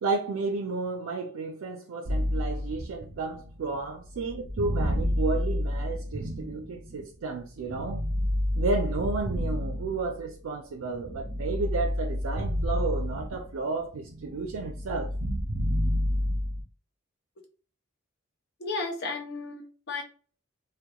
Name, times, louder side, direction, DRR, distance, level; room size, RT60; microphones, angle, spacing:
voice 1, 0.0-8.0 8.6-15.1, right 3 dB, 85° right, 0.4 m, -32 dB
sound 1, 2.1-7.1 7.7-10.4 10.8-13.7 13.9-16.6, left 1 dB, 40° right, 0.7 m, -30 dB
voice 2, 18.6-20.0, left 3 dB, 55° left, 0.7 m, -33 dB
2.8 x 2.1 x 2.2 m
head